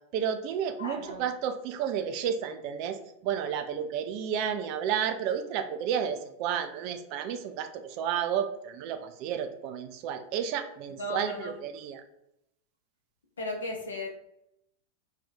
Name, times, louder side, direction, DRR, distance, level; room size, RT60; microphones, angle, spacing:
voice 1, 0.1-12.0, right 8 dB, 45° right, 7 dB, 0.3 m, -31 dB
voice 2, 0.8-1.2 11.0-11.5 13.4-14.1, left 1 dB, 70° left, 2 dB, 0.7 m, -35 dB
2.7 x 2.2 x 3.5 m, 0.79 s
figure-of-eight pair, 90°, 0 cm